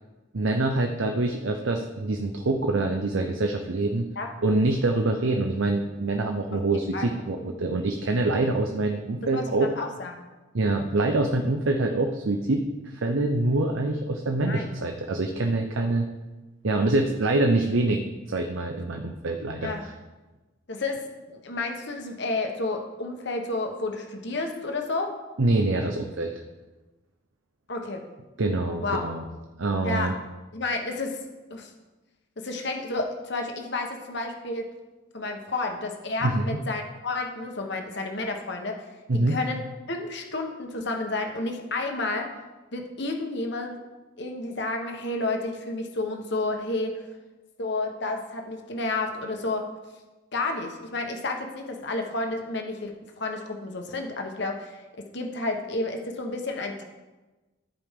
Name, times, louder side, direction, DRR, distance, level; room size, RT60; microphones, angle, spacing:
voice 1, 0.3-4.1 4.4-9.7 10.5-16.1 16.6-18.0 18.3-19.9 25.4-26.3 28.4-29.3 29.6-30.1 36.2-36.6 39.1-39.4, right 2 dB, 70° right, 4 dB, 0.7 m, -25 dB
voice 2, 9.8-10.2 14.4-14.8 19.6-19.8 20.7-25.1 27.7-28.0 28.8-29.0 29.8-30.2 30.5-31.2 31.5-31.7 32.4-34.7 35.1-38.8 39.3-39.6 39.9-42.3 42.7-43.8 44.2-47.0 47.6-49.7 50.3-54.8 55.1-56.8, left 2 dB, 55° left, 3 dB, 1.1 m, -31 dB
14.0 x 5.0 x 3.7 m, 1.2 s
head